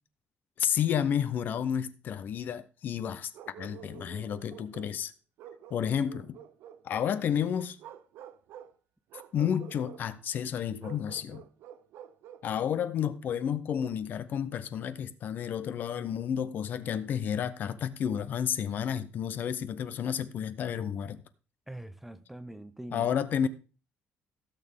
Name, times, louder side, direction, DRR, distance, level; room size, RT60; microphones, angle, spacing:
voice 1, 0.6-3.3 3.6-5.1 5.7-6.4 6.8-7.8 9.3-11.4 12.4-21.2 22.9-23.5, left 8 dB, 45° left, 0.6 m, -31 dB
Bark, 3.3-5.0 5.4-7.1 7.8-8.7 9.1-10.0 10.8-12.5, right 10 dB, 70° right, 0.7 m, -49 dB
voice 2, 21.7-23.1 23.4-23.5, right 1 dB, 5° right, 0.5 m, -43 dB
16.0 x 6.6 x 3.6 m
cardioid pair, 175°, 4 cm